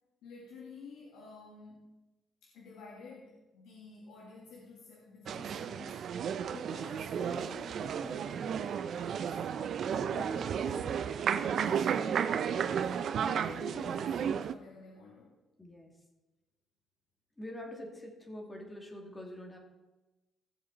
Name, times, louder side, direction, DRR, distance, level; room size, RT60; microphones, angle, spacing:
voice 1, 0.2-2.0 2.4-6.0 6.5-9.4 9.9-11.0 11.3-12.3 12.9-15.4, left 4 dB, 90° left, -3 dB, 1.9 m, -51 dB
sound 1, 5.3-14.5, right 8 dB, 65° right, 0.5 m, -33 dB
voice 2, 15.6-15.9 17.4-19.6, left 1 dB, 15° left, 1 dB, 2.4 m, -45 dB
16.5 x 7.2 x 4.0 m, 1.0 s
cardioid pair, 90°, 0 cm